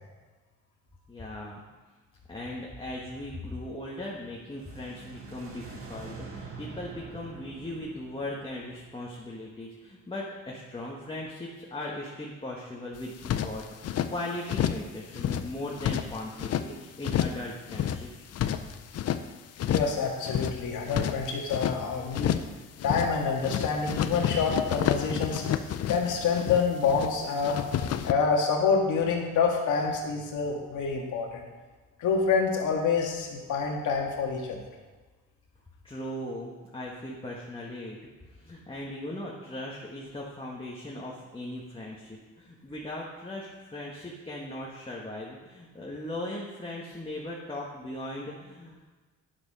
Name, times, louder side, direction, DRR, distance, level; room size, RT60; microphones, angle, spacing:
voice 1, 1.1-1.6 2.3-13.1 13.4-18.2 35.8-38.0 38.3-48.8, left 1 dB, 15° left, -4 dB, 1.6 m, -38 dB
sound 1, 4.3-9.5, right 4 dB, 45° right, 1.7 m, -45 dB
sound 2, 13.0-14.1 14.5-14.9 15.1-16.7 17.0-17.4 17.7-19.2 19.6-20.0 20.2-21.8 22.1-22.5 22.8-23.2 23.4-27.1 27.4-28.1, left 10 dB, 55° left, 0.6 m, -30 dB
voice 2, 19.6-22.3 22.8-25.4 25.9-27.6 28.0-31.4 32.0-34.6, left 5 dB, 80° left, 0 dB, 2.1 m, -27 dB
9.9 x 7.0 x 5.6 m, 1.3 s
cardioid pair, 90°, 30 cm